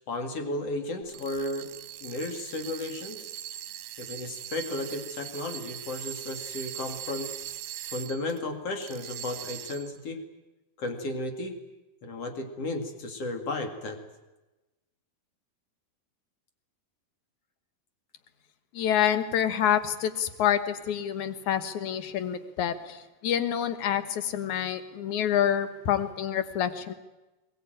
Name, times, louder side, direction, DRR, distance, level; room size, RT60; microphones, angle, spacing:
voice 1, 0.1-1.7 2.0-3.3 4.0-7.3 7.9-10.2 10.8-11.6 12.0-14.0, left 2 dB, 45° left, 5 dB, 2.8 m, -34 dB
sound 1, 1.0-8.4 8.8-10.0, right 12 dB, 70° right, 2.4 m, -41 dB
voice 2, 18.7-26.9, left 9 dB, 60° left, 11 dB, 2.3 m, -27 dB
22.0 x 19.5 x 9.1 m, 1.1 s
omnidirectional pair, 4.4 m